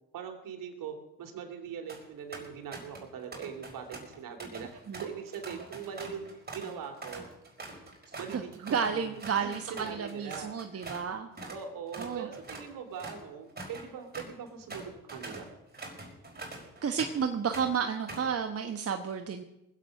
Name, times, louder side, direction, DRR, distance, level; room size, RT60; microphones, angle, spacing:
voice 1, 0.1-4.7 5.0-7.3 8.2-10.5 11.5-15.5, right 7 dB, 70° right, 4 dB, 2.9 m, -41 dB
sound 1, 1.7-2.0 2.3-3.1 3.3-11.1 11.4-11.6 11.9-17.3 17.5-18.3, right 2 dB, 30° right, 5.1 m, -44 dB
voice 2, 8.3-11.3 12.0-12.3 16.8-19.4, right 6 dB, 45° right, 6 dB, 1.2 m, -32 dB
20.0 x 8.3 x 6.5 m, 0.92 s
supercardioid pair, 70°, 34 cm